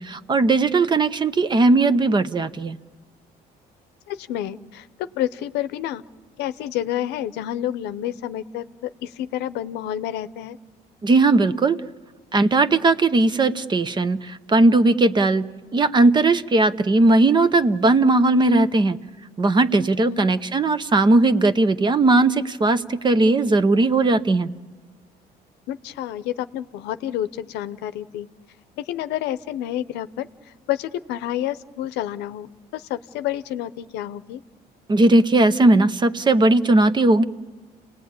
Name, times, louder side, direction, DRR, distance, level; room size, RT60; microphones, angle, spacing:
voice 1, 0.0-2.8 11.0-11.8 12.3-19.0 19.4-24.5 34.9-37.2, right 2 dB, 25° right, 13 dB, 0.8 m, -18 dB
voice 2, 4.1-6.0 6.4-10.6 20.0-20.3 25.7-28.3 28.8-34.4, left 12 dB, 85° left, 13 dB, 0.7 m, -29 dB
29.0 x 18.5 x 8.7 m, 1.4 s
cardioid pair, 110°, 17 cm